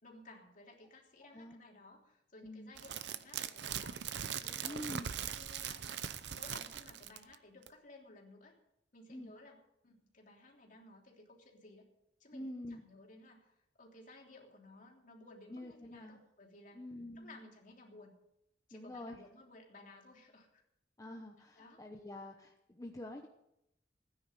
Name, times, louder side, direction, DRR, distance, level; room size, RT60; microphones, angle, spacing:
voice 1, 0.0-4.0 4.4-8.5 8.9-9.6 9.8-11.9 12.2-12.5 12.8-16.8 17.2-18.1 18.7-20.6 21.6-21.8, left 2 dB, 50° left, 0 dB, 3.3 m, -57 dB
voice 2, 1.2-1.6 2.4-2.7 4.6-5.1 9.1-9.3 12.3-12.8 15.5-16.2 16.7-17.4 18.7-19.2 21.0-23.3, left 1 dB, 20° left, 2 dB, 1.0 m, -46 dB
sound 1, 2.8-7.3 7.7-7.8, right 8 dB, 75° right, 0.7 m, -41 dB
16.0 x 9.9 x 6.8 m, 0.81 s
head